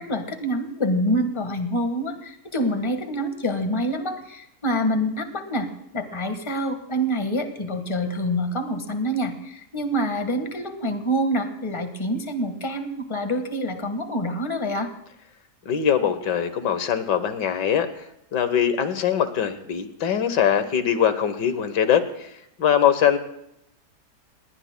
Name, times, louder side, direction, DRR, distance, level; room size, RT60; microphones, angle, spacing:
voice 1, 0.0-5.7 5.9-14.9, equal, 20° left, 7 dB, 1.4 m, -26 dB
voice 2, 15.7-17.9 18.3-22.3 22.6-23.2, left 9 dB, 80° left, 10 dB, 1.7 m, -22 dB
29.0 x 19.5 x 2.2 m, 0.80 s
omnidirectional pair, 1.8 m